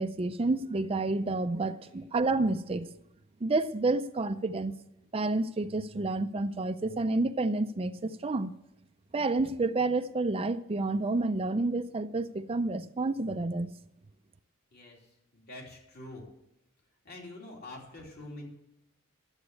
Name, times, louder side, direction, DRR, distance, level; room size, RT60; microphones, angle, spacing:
voice 1, 0.0-2.9 3.4-4.7 5.1-8.5 9.1-13.7, right 2 dB, 25° right, 0.5 m, -29 dB
voice 2, 14.7-16.2 17.0-18.5, left 1 dB, 50° left, 3.1 m, -46 dB
11.5 x 8.0 x 8.2 m
head